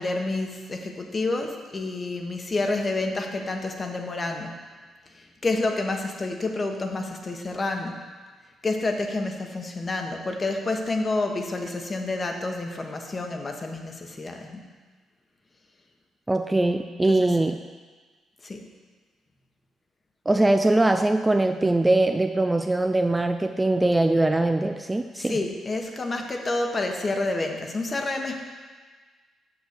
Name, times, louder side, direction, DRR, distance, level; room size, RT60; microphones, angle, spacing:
voice 1, 0.0-4.6 5.1-8.0 8.6-14.6 17.1-17.3 18.4-18.7 25.2-28.4, left 2 dB, 30° left, 3 dB, 1.2 m, -29 dB
voice 2, 16.3-17.6 20.3-25.4, right 2 dB, 15° right, 7 dB, 0.4 m, -22 dB
6.9 x 6.9 x 6.6 m, 1.4 s
cardioid pair, 90°, 0 cm